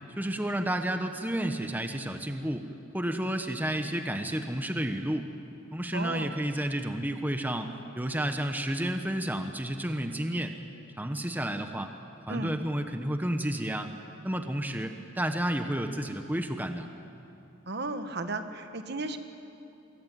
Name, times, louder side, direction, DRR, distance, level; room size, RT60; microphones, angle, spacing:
voice 1, 0.2-2.7 2.9-5.3 5.7-10.6 11.0-11.9 12.3-13.9 14.2-16.9, right 1 dB, 10° right, 6 dB, 1.1 m, -31 dB
voice 2, 5.9-6.3 12.3-12.5 17.7-19.2, right 2 dB, 55° right, 8 dB, 1.5 m, -34 dB
25.0 x 22.5 x 9.2 m, 2.7 s
head